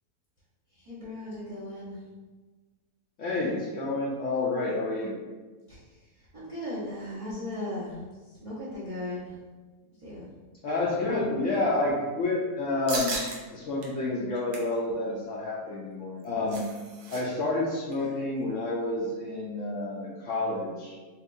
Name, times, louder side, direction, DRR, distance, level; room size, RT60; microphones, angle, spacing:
voice 1, 0.7-2.0 5.7-9.4 10.0-10.3, left 1 dB, 30° right, -9 dB, 0.7 m, -37 dB
voice 2, 3.2-5.2 10.6-13.2 13.5-16.6 17.1-21.0, left 2 dB, 65° left, -5 dB, 0.8 m, -29 dB
sound 1, 12.9-13.4 13.8-13.9 14.3-14.7 16.0-17.2 17.5-17.6 17.9-18.2, right 3 dB, 85° right, 1.2 m, -36 dB
4.3 x 2.4 x 2.5 m, 1.3 s
omnidirectional pair, 1.7 m